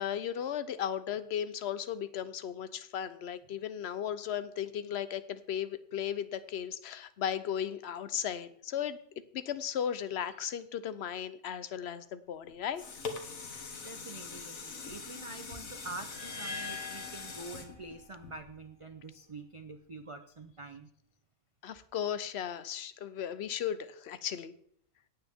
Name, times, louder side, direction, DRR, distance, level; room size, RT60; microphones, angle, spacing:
voice 1, 0.0-9.0 9.3-12.8 21.6-24.5, left 9 dB, 55° left, 14 dB, 0.9 m, -36 dB
sound 1, 12.5-18.8 19.3-19.4, left 4 dB, 75° left, 1.8 m, -43 dB
voice 2, 13.8-20.9, right 3 dB, 40° right, 8 dB, 0.5 m, -46 dB
sound 2, 16.1-18.2, left 4 dB, 10° right, 1.7 m, -43 dB
16.5 x 8.9 x 3.5 m, 0.65 s
omnidirectional pair, 1.5 m